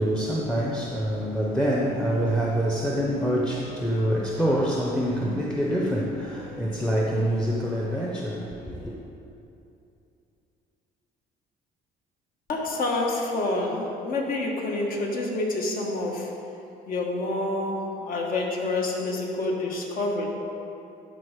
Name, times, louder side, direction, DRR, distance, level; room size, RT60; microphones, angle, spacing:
voice 1, 0.0-9.0, equal, 5° left, -2 dB, 0.8 m, -26 dB
voice 2, 12.5-16.3 16.9-20.3, left 2 dB, 55° left, 0 dB, 1.5 m, -28 dB
12.5 x 4.2 x 5.1 m, 2.8 s
cardioid pair, 110°, 17 cm